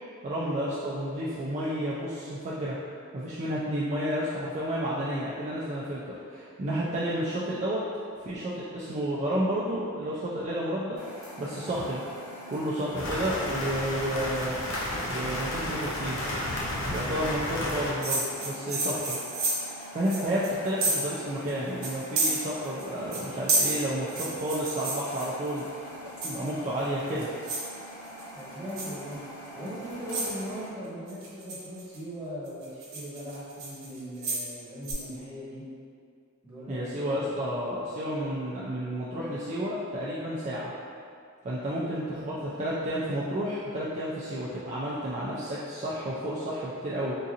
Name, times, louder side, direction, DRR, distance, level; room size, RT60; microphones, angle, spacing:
voice 1, 0.2-2.8 3.1-6.0 6.3-7.8 8.2-11.0 11.4-12.0 12.5-14.6 15.0-16.3 16.9-19.2 19.9-25.6 26.0-27.3 36.7-40.7 41.4-47.2, equal, 35° right, -8 dB, 0.3 m, -31 dB
sound 1, 10.9-30.7, equal, 15° left, 1.0 m, -44 dB
sound 2, 12.9-17.9, left 1 dB, 75° left, 0.6 m, -32 dB
sound 3, 18.0-21.2 21.5-21.6 21.8-22.8 23.1-25.6 26.2-26.6 27.1-27.7 28.1-28.4 28.8-29.0 29.7-29.8 30.1-30.4 31.1-32.0 32.5-34.5 34.8-34.9, right 2 dB, 75° right, 0.8 m, -30 dB
voice 2, 28.3-29.2 29.5-35.6 36.4-37.7 38.5-38.8, equal, 10° right, -11 dB, 1.3 m, -39 dB
3.7 x 2.7 x 2.5 m, 2.4 s
head